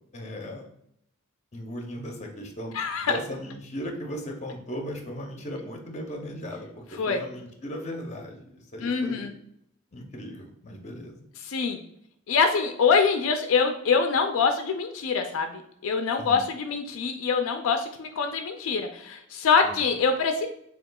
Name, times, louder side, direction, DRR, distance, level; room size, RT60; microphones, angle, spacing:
voice 1, 0.1-0.7 1.5-9.3 9.9-11.1 16.2-16.4 19.6-19.9, equal, 35° left, 2 dB, 0.6 m, -37 dB
voice 2, 2.7-3.2 7.0-7.2 8.8-9.3 11.4-11.8 12.3-20.5, left 5 dB, 75° left, 6 dB, 0.4 m, -24 dB
6.4 x 2.4 x 2.3 m, 0.72 s
head